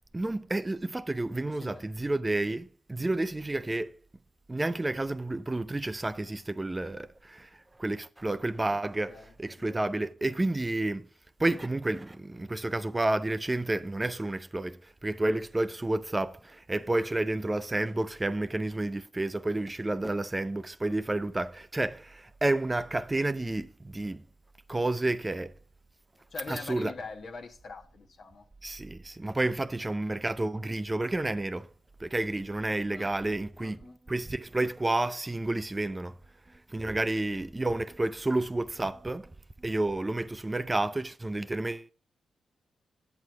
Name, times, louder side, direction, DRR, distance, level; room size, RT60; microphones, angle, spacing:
voice 1, 0.1-3.9 4.5-7.5 7.8-11.0 11.4-24.2 24.7-25.5 26.5-26.9 28.6-31.7 32.0-36.2 36.7-39.3 39.6-41.9, right 2 dB, 25° right, 0.5 m, -30 dB
voice 2, 1.3-1.9 9.1-10.0 26.3-28.5 32.9-33.1 33.6-34.0, left 4 dB, 65° left, 1.2 m, -44 dB
9.0 x 8.0 x 3.4 m
supercardioid pair, 45°, 0 cm